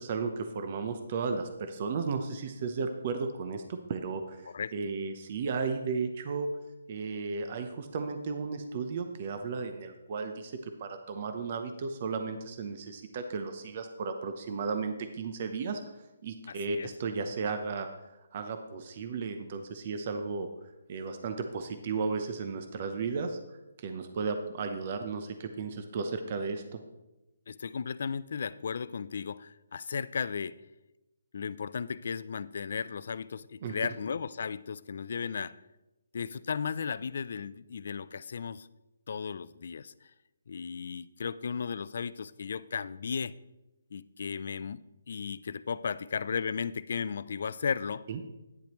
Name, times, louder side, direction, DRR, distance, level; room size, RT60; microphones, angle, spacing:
voice 1, 0.0-6.5 6.9-17.9 18.3-20.5 20.9-23.4 23.8-26.8 33.6-33.7 48.1-48.2, right 4 dB, 40° right, 0.7 m, -34 dB
voice 2, 16.5-16.9 27.5-30.6 31.3-35.5 36.1-38.7 39.1-39.9 40.5-43.3 43.9-48.0, left 6 dB, 55° left, 0.4 m, -35 dB
10.5 x 9.9 x 3.1 m
hypercardioid pair, 165°, 0 cm